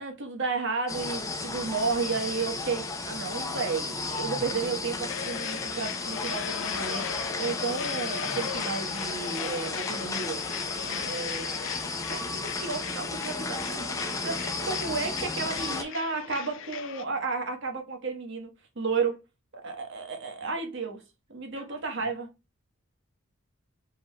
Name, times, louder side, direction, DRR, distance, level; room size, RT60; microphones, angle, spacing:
voice 1, 0.0-10.4 11.0-11.5 12.1-18.5 18.8-19.2 19.5-21.0 21.3-22.3, right 4 dB, 55° right, 1.1 m, -32 dB
sound 1, 0.9-15.8, left 3 dB, 15° left, 0.6 m, -33 dB
sound 2, 5.1-17.1, left 9 dB, 60° left, 0.3 m, -38 dB
voice 2, 10.8-11.2 12.0-12.2 20.4-20.5 21.5-22.0, right 1 dB, 25° right, 1.6 m, -47 dB
4.7 x 3.8 x 2.2 m
head